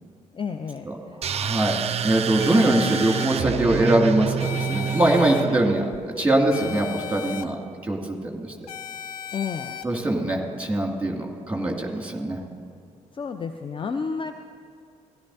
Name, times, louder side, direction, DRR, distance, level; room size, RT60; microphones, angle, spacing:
voice 1, 0.3-1.2 9.3-9.8 13.1-14.3, left 5 dB, 25° left, 8 dB, 0.5 m, -31 dB
voice 2, 1.2-1.8 2.0-7.6 7.8-8.5 9.8-12.4, right 1 dB, 5° right, 0 dB, 2.3 m, -22 dB
sound 1, 1.2-6.0, right 8 dB, 35° right, 0.4 m, -28 dB
sound 2, 2.4-3.3 4.4-5.4 6.5-7.4 8.7-9.8, left 8 dB, 85° left, 0.4 m, -35 dB
16.5 x 11.0 x 2.7 m, 2.3 s
figure-of-eight pair, 40°, 19 cm